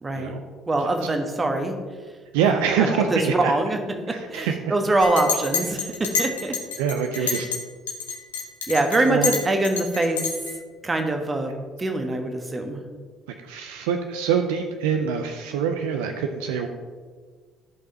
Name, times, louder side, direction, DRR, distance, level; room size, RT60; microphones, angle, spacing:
voice 1, 0.0-0.3 0.7-1.7 2.8-3.8 4.1-6.6 7.2-7.4 8.7-10.2 10.8-11.5 11.8-12.8, right 2 dB, 25° right, 5 dB, 1.2 m, -24 dB
voice 2, 2.3-3.5 4.1-4.6 6.8-7.5 9.1-9.3 13.4-16.7, right 7 dB, 70° right, 5 dB, 0.4 m, -25 dB
Chink clink, 5.0-7.6 7.9-10.6, left 5 dB, 80° left, 0.9 m, -28 dB
13.5 x 5.4 x 2.8 m, 1.5 s
figure-of-eight pair, 50°, 0 cm